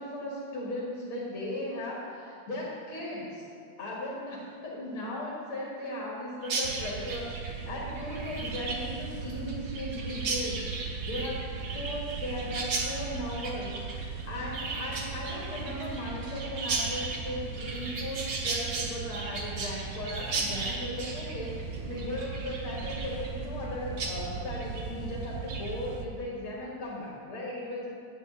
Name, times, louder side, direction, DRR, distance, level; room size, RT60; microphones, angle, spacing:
voice 1, 0.0-3.5 3.8-27.9, left 1 dB, 90° left, -5 dB, 2.8 m, -37 dB
Chirp tweet, 6.4-23.7 24.0-24.1 24.5-24.9 25.2-25.7, right 3 dB, 55° right, 1.6 m, -36 dB
sound 1, 6.6-26.1, right 5 dB, 70° right, 1.3 m, -39 dB
9.9 x 5.0 x 7.9 m, 2.4 s
omnidirectional pair, 2.3 m